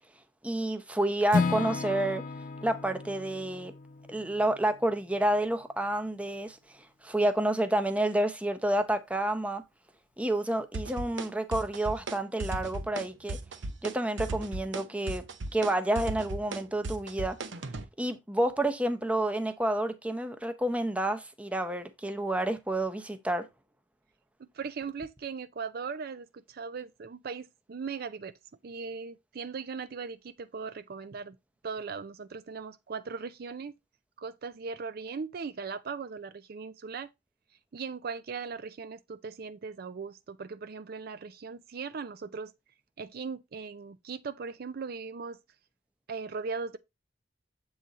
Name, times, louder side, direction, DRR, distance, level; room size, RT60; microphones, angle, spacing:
voice 1, 0.4-2.2 2.6-3.7 4.1-9.6 10.2-13.4 13.8-15.2 15.5-17.4 18.0-23.5, right 1 dB, 5° right, 0.7 m, -29 dB
Acoustic guitar / Strum, 1.3-5.4, left 4 dB, 45° left, 0.4 m, -33 dB
sound 1, 10.7-11.3 11.5-12.1 12.4-13.0 13.3-13.9 14.2-17.8, right 2 dB, 75° right, 0.8 m, -35 dB
voice 2, 24.5-28.3 28.6-31.4 31.6-33.7 34.2-37.1 37.7-42.5 43.0-45.4 46.1-46.8, right 5 dB, 55° right, 0.4 m, -38 dB
7.5 x 3.9 x 4.0 m
head